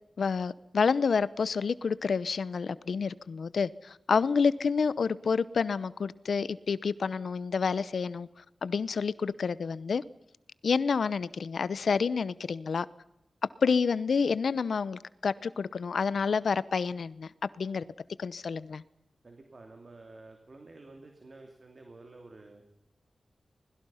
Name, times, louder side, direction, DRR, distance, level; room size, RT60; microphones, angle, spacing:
voice 1, 0.2-3.7 4.1-8.3 8.6-10.0 10.6-12.8 13.6-17.3 17.6-17.8 18.2-18.8, left 5 dB, 75° left, 0.8 m, -28 dB
voice 2, 19.2-22.6, right 2 dB, 45° right, 2.9 m, -51 dB
26.5 x 20.5 x 5.7 m
wide cardioid pair, 95°, 0 cm